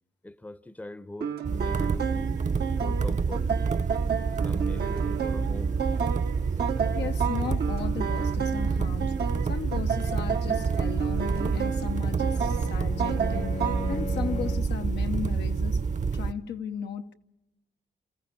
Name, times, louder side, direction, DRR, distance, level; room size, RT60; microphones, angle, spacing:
voice 1, 0.2-2.4 2.8-3.5 4.4-5.8, left 1 dB, 10° left, 0.7 m, -41 dB
sound 1, 1.2-14.0, right 7 dB, 70° right, 1.0 m, -32 dB
sound 2, 1.4-16.3, right 5 dB, 45° right, 0.9 m, -28 dB
voice 2, 6.9-13.5 13.9-15.8 16.1-17.1, left 8 dB, 80° left, 0.8 m, -36 dB
Bowed string instrument, 11.7-14.9, left 3 dB, 45° left, 0.9 m, -38 dB
28.0 x 14.5 x 8.8 m
cardioid pair, 60°, 17 cm